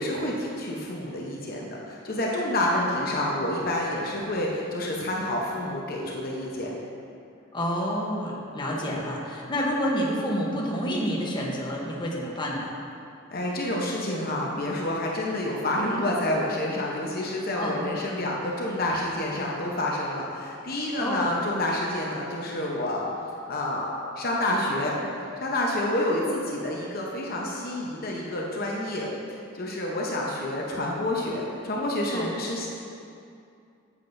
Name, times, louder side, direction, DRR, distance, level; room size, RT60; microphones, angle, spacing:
voice 1, 0.0-6.7 13.3-23.1 23.5-24.9 25.2-29.1 29.5-32.7, left 1 dB, 50° left, -3 dB, 0.8 m, -28 dB
voice 2, 7.5-12.8 17.5-17.8 21.0-21.3 32.1-32.3, equal, 25° left, -4 dB, 1.0 m, -29 dB
9.0 x 7.5 x 2.6 m, 2.5 s
head